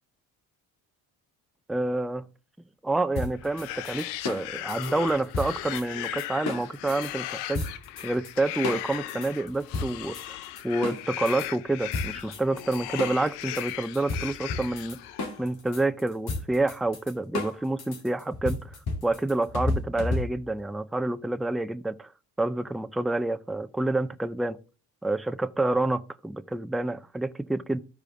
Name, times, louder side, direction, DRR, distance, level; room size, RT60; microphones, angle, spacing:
voice 1, 1.7-2.3 2.8-7.6 8.0-10.4 10.6-15.0 15.4-18.7 19.0-22.1 22.4-24.6 25.0-27.8, right 2 dB, ahead, 0.4 m, -28 dB
sound 1, 3.2-7.1 7.5-8.3 8.6-11.5 11.9-20.6, left 3 dB, 50° left, 2.4 m, -33 dB
sound 2, 3.4-15.4, left 14 dB, 85° left, 0.7 m, -37 dB
13.5 x 4.9 x 3.6 m
hypercardioid pair, 60°, 47 cm